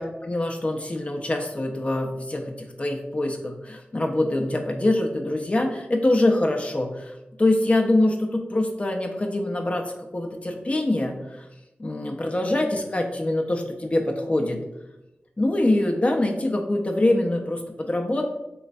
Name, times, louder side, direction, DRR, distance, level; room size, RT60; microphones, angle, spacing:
voice 1, 0.0-11.5 11.8-14.6 15.4-18.3, left 1 dB, 35° left, 2 dB, 0.4 m, -24 dB
3.2 x 3.1 x 2.5 m, 0.96 s
wide cardioid pair, 70°, 4 cm